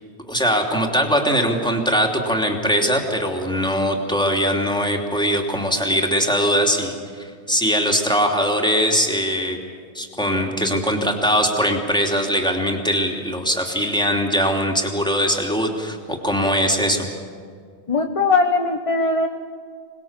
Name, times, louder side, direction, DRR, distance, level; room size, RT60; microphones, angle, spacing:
voice 1, 0.2-9.6 9.9-17.1, equal, 5° left, 1 dB, 3.0 m, -21 dB
voice 2, 17.9-19.3, left 3 dB, 30° left, 4 dB, 1.1 m, -19 dB
27.0 x 20.5 x 7.5 m, 2.2 s
omnidirectional pair, 1.2 m